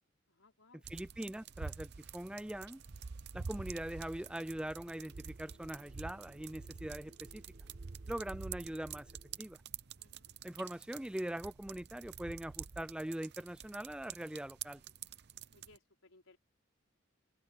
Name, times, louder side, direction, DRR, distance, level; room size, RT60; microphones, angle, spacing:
voice 1, 0.3-0.9 10.0-10.3 15.5-16.4, left 2 dB, 90° left, 4.6 m, -64 dB
sound 1, 0.8-15.8, right 6 dB, 55° right, 0.7 m, -48 dB
voice 2, 0.9-2.8 3.3-7.4 8.1-9.1 9.4-9.6 10.4-14.8, right 1 dB, 5° right, 0.3 m, -42 dB
sound 2, 1.9-8.5, right 2 dB, 75° right, 2.6 m, -69 dB
sound 3, 4.1-9.4, right 1 dB, 35° right, 6.8 m, -64 dB
open air
head